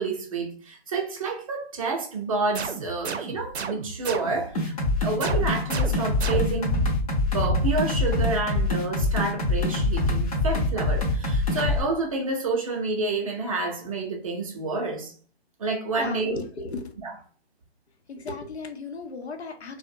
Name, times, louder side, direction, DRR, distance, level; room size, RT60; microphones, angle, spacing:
voice 1, 0.0-4.7 5.0-6.7 7.3-15.1 15.6-16.4 17.0-17.2, right 3 dB, 35° right, 0.5 m, -29 dB
sound 1, 2.5-4.6 5.2-6.8, right 5 dB, 85° right, 0.5 m, -34 dB
sound 2, 4.5-11.8, left 2 dB, 35° left, 0.7 m, -24 dB
voice 2, 16.0-16.9 18.1-19.8, left 3 dB, 90° left, 0.6 m, -35 dB
2.4 x 2.0 x 2.6 m
hypercardioid pair, 145°, 32 cm